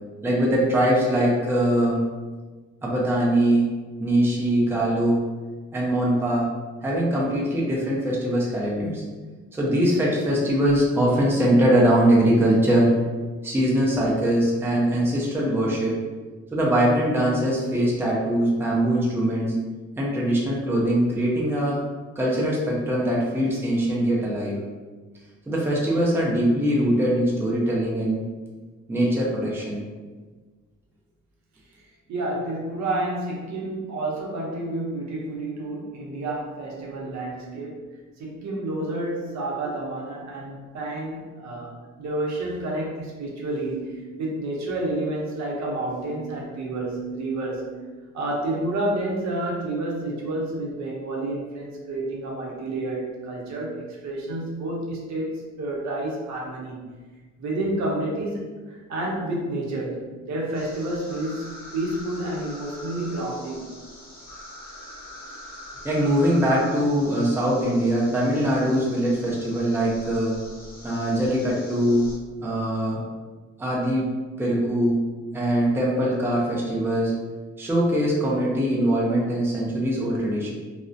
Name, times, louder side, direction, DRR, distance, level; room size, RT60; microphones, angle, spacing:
voice 1, 0.2-2.0 2.8-3.7 4.0-5.2 5.7-6.5 6.8-9.0 9.5-12.9 13.4-16.0 16.5-19.5 20.0-21.8 22.2-24.6 25.5-28.2 28.9-29.8 65.8-70.4 70.8-72.1 72.4-73.0 73.6-74.1 74.4-75.0 75.3-77.1 77.6-80.5, right 1 dB, 10° right, -4 dB, 0.5 m, -22 dB
voice 2, 32.1-37.9 38.2-47.9 48.1-55.3 55.6-56.9 57.4-63.7, right 2 dB, 65° right, -3 dB, 0.7 m, -30 dB
sound 1, 60.5-72.2, left 1 dB, 30° left, 0.8 m, -43 dB
2.4 x 2.1 x 2.5 m, 1.4 s
cardioid pair, 90°, 30 cm